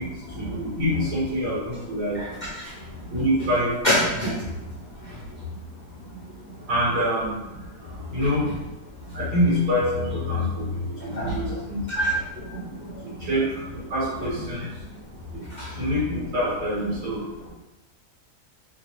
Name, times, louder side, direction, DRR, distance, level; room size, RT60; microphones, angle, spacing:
voice 1, 0.4-2.2 3.1-3.7 4.2-4.4 6.7-7.4 8.1-8.5 9.1-11.8 13.2-13.5 13.7-14.7 15.3-15.4 15.8-17.3, equal, 85° right, -11 dB, 2.3 m, -25 dB
voice 2, 3.8-4.3 11.2-11.6 11.9-12.2 12.8-12.9 15.6-15.7, equal, 75° left, -6 dB, 0.4 m, -24 dB
3.8 x 2.3 x 2.9 m, 1.0 s
omnidirectional pair, 1.7 m